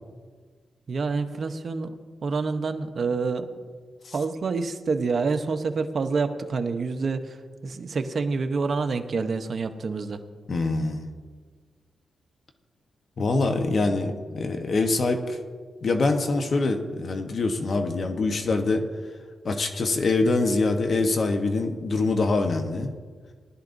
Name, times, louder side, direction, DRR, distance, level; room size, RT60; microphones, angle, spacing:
voice 1, 0.9-1.9 2.2-3.5 4.1-7.4 7.6-10.2, right 4 dB, 55° right, 8 dB, 0.8 m, -27 dB
voice 2, 10.5-11.1 13.2-15.2 15.8-18.8 19.4-22.9, left 3 dB, 55° left, 5 dB, 1.0 m, -24 dB
19.0 x 12.0 x 2.6 m, 1.5 s
cardioid pair, 90°, 0 cm